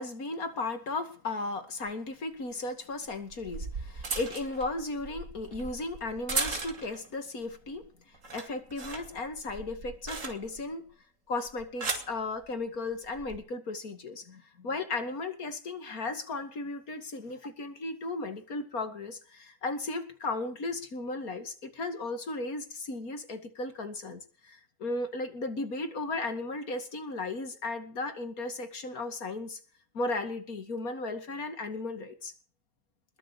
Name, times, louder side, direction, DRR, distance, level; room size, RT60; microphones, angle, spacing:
voice 1, 0.0-7.9 8.3-10.9 11.3-29.6 29.9-32.3, left 2 dB, 80° left, 8 dB, 2.8 m, -35 dB
sound 1, 1.9-2.0 3.1-7.1 7.5-7.9 8.1-10.7 11.5-12.2 13.1-13.4, right 3 dB, 60° right, 2.8 m, -37 dB
21.0 x 7.4 x 8.5 m, 0.41 s
omnidirectional pair, 1.5 m